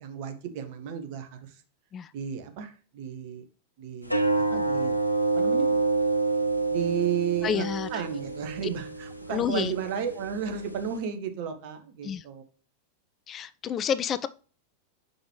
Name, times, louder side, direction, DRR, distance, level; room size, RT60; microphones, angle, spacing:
voice 1, 0.0-1.6 2.1-3.4 3.8-5.0 5.3-5.8 6.7-7.6 7.9-12.4, right 8 dB, 45° right, 1.1 m, -33 dB
sound 1, 4.0-11.0, right 3 dB, 90° left, 0.6 m, -28 dB
voice 2, 7.4-7.9 9.3-9.7 12.0-12.2 13.3-14.3, left 8 dB, 25° left, 0.3 m, -29 dB
5.9 x 5.1 x 3.1 m
figure-of-eight pair, 90°, 0 cm